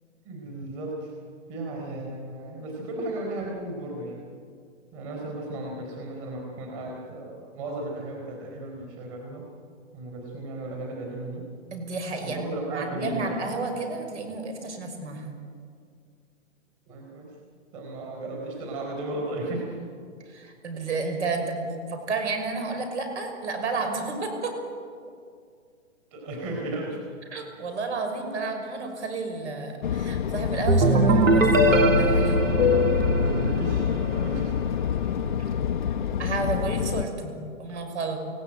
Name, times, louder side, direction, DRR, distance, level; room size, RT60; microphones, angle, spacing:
voice 1, 0.2-1.1 1.5-4.2 4.9-9.5 9.9-11.4 12.2-13.4 16.9-17.3 17.7-19.8 26.1-27.0 33.2-34.5, right 1 dB, 25° right, 1 dB, 4.2 m, -35 dB
voice 2, 11.7-15.3 20.3-24.5 27.3-32.6 36.2-38.2, right 3 dB, 60° right, 5 dB, 5.9 m, -31 dB
Fixed-wing aircraft airplane, 29.8-37.0, left 8 dB, 40° left, 0.8 m, -26 dB
sound 1, 30.7-34.4, right 2 dB, 80° right, 2.6 m, -21 dB
29.0 x 17.5 x 9.1 m, 2.2 s
hypercardioid pair, 170°, 39 cm